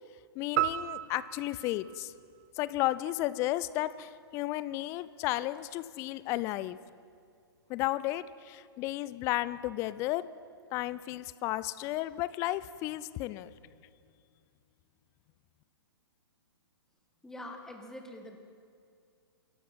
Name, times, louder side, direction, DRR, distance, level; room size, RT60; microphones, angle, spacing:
voice 1, 0.4-2.1 2.6-6.8 7.7-10.3 10.7-13.5, left 16 dB, 20° left, 16 dB, 0.3 m, -33 dB
sound 1, 0.6-3.0, right 14 dB, 40° right, 0.5 m, -35 dB
voice 2, 17.2-18.4, left 1 dB, 5° left, 3 dB, 1.3 m, -44 dB
25.0 x 11.5 x 4.2 m, 2.3 s
figure-of-eight pair, 115°, 13 cm